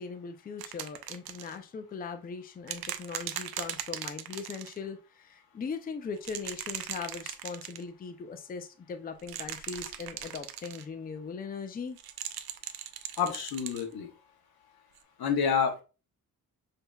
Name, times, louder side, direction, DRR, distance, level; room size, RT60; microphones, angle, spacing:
voice 1, 0.0-12.0, left 5 dB, 25° left, 0.4 m, -40 dB
sound 1, 0.6-1.6 2.7-4.8 6.2-7.8 9.2-10.8 12.0-13.8 15.0-15.1, right 11 dB, 90° right, 0.5 m, -39 dB
voice 2, 13.2-14.1 15.2-15.8, left 7 dB, 90° left, 1.0 m, -28 dB
5.5 x 2.8 x 2.2 m
cardioid pair, 130°, 36 cm